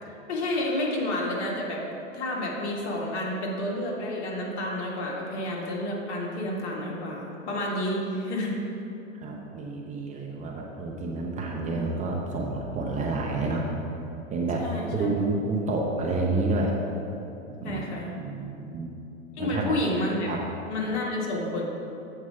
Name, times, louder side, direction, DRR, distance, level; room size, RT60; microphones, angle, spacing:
voice 1, 0.3-1.8 2.1-8.6 14.6-15.1 17.6-18.1 19.3-20.3 20.7-21.6, left 1 dB, 55° left, -2 dB, 1.8 m, -30 dB
voice 2, 9.2-13.6 14.3-14.6 14.9-16.7 17.6-17.8 18.2-18.9 19.4-19.8 20.3-20.4, right 3 dB, 20° right, -1 dB, 0.6 m, -29 dB
7.7 x 4.6 x 5.6 m, 2.9 s
hypercardioid pair, 115°, 39 cm